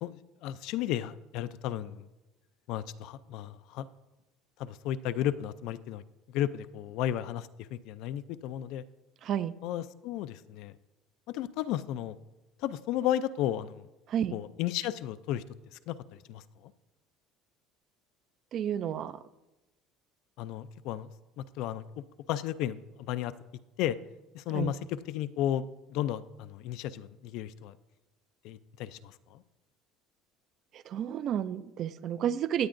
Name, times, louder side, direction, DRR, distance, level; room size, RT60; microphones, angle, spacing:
voice 1, 0.0-2.1 2.7-3.9 4.6-6.0 6.3-8.8 9.6-10.7 11.3-12.2 12.6-13.9 14.3-15.4 15.7-16.7 20.4-21.1 21.4-21.8 22.3-23.3 23.8-24.0 24.3-24.8 25.1-27.8 28.4-29.4, left 12 dB, 55° left, 14 dB, 0.4 m, -34 dB
voice 2, 9.2-9.5 14.1-14.4 18.5-19.2 24.5-24.7 30.7-32.7, right 9 dB, 35° right, 15 dB, 0.3 m, -31 dB
17.0 x 9.3 x 2.5 m, 1.0 s
cardioid pair, 170°, 0 cm